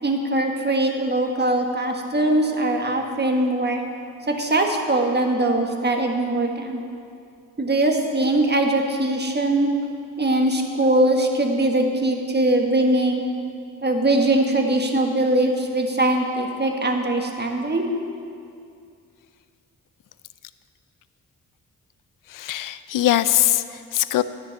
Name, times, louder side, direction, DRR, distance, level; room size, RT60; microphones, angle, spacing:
voice 1, 0.0-3.8 4.4-6.8 7.6-9.7 10.2-13.2 13.8-17.9, right 1 dB, 30° right, 2 dB, 1.5 m, -21 dB
voice 2, 22.3-24.2, left 13 dB, 65° left, 14 dB, 0.5 m, -21 dB
10.5 x 5.3 x 8.2 m, 2.4 s
supercardioid pair, 50°, 35 cm